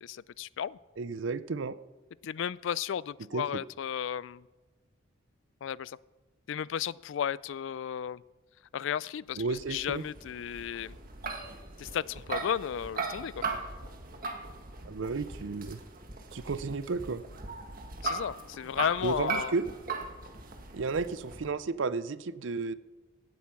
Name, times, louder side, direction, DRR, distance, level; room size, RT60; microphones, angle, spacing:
voice 1, 0.0-0.8 2.2-4.4 5.6-6.0 6.5-8.2 8.7-10.9 11.8-13.4 18.0-19.5, left 8 dB, 65° left, 21 dB, 0.3 m, -34 dB
voice 2, 1.0-1.8 3.3-3.6 9.4-10.0 14.9-15.8 16.3-17.2 19.0-19.6 20.7-22.7, right 4 dB, 65° right, 16 dB, 0.5 m, -33 dB
sound 1, 9.4-21.5, right 4 dB, 45° right, 1.6 m, -39 dB
17.0 x 8.4 x 5.9 m, 1.3 s
head